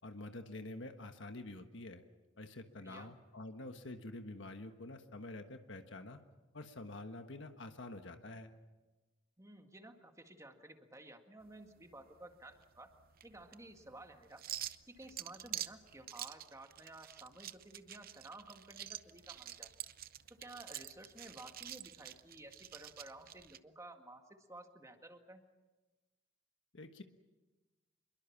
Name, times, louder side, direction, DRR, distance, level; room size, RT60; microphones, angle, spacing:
voice 1, 0.0-2.0 2.4-6.2 6.5-8.5 26.7-27.0, left 2 dB, 70° left, 7 dB, 1.4 m, -47 dB
voice 2, 2.7-3.1 9.4-12.9 13.2-14.4 14.9-19.7 20.3-25.4, right 2 dB, 15° right, 5 dB, 1.9 m, -54 dB
sound 1, 11.4-23.6, right 12 dB, 50° right, 0.7 m, -48 dB
26.5 x 22.5 x 7.3 m, 1.2 s
head